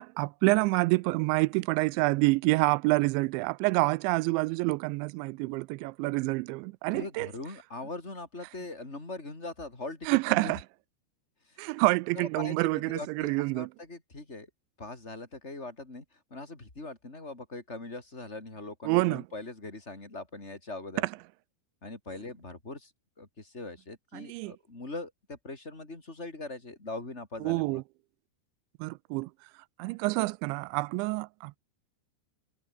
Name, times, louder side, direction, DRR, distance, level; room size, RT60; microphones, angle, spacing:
voice 1, 0.0-7.3 10.1-10.6 11.6-13.7 18.9-19.2 24.1-24.5 27.4-27.8 28.8-29.3 29.8-31.6, right 24 dB, 85° right, 2.8 m, -27 dB
voice 2, 6.9-10.6 11.5-11.6 12.1-14.5 14.8-16.0 16.3-21.1 21.8-22.9 23.2-27.8, left 2 dB, 15° left, 4.2 m, -41 dB
omnidirectional pair, 5.3 m